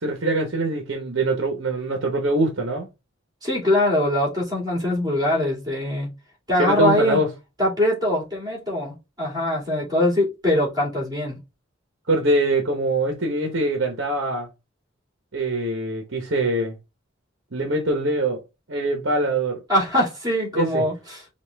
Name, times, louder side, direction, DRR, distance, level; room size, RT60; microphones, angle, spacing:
voice 1, 0.0-2.9 6.6-7.3 12.1-14.5 15.3-16.8 17.5-18.4 18.7-19.6 20.5-20.8, right 2 dB, 60° right, 0.9 m, -23 dB
voice 2, 3.4-6.1 6.5-7.2 7.6-11.4 19.7-21.2, left 1 dB, 20° right, 2.6 m, -22 dB
5.3 x 2.4 x 3.4 m
head